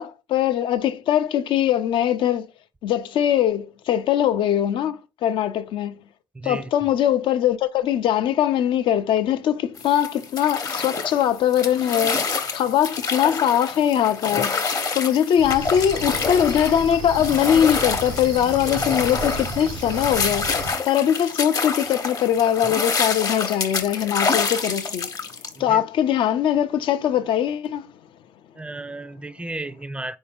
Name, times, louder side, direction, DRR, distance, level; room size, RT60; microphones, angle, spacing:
voice 1, 0.0-2.5 2.8-6.0 6.4-14.6 14.9-25.1 25.6-27.9, left 10 dB, 75° left, 0.5 m, -21 dB
voice 2, 6.3-6.7 25.5-25.8 28.5-30.2, right 2 dB, 15° right, 0.4 m, -33 dB
sound 1, 9.8-25.5, left 4 dB, 45° left, 0.8 m, -27 dB
Cricket, 15.4-20.7, right 3 dB, 85° right, 0.6 m, -33 dB
4.1 x 2.7 x 3.4 m
supercardioid pair, 65°, 9 cm